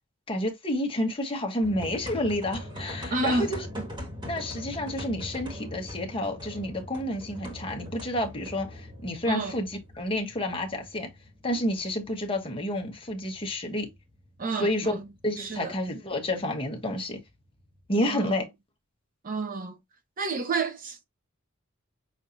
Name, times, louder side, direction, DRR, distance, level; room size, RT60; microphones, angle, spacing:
voice 1, 0.3-3.7 4.3-11.1 11.4-13.9 14.5-15.0 15.2-17.2 17.9-18.4, left 1 dB, 25° left, 1.2 m, -30 dB
sound 1, 1.6-17.8, equal, 20° right, 1.6 m, -42 dB
voice 2, 3.1-3.5 9.2-9.6 14.4-15.0 15.4-15.7 18.1-18.3 19.2-19.8 20.2-21.0, right 3 dB, 40° right, 0.8 m, -30 dB
6.3 x 2.7 x 2.6 m
head